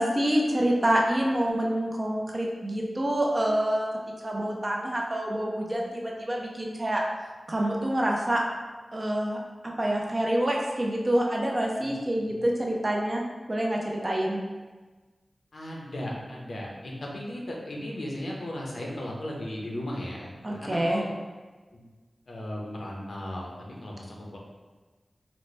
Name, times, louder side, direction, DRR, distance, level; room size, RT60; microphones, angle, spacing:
voice 1, 0.0-3.9 4.2-7.0 7.5-8.4 8.9-9.4 9.8-13.2 13.5-14.4 20.4-21.0, right 1 dB, 35° right, -1 dB, 0.6 m, -27 dB
voice 2, 15.5-21.1 21.7-21.9 22.3-24.4, left 1 dB, 70° left, -2 dB, 0.6 m, -36 dB
4.0 x 2.1 x 3.1 m, 1.3 s
wide cardioid pair, 80°, 0 cm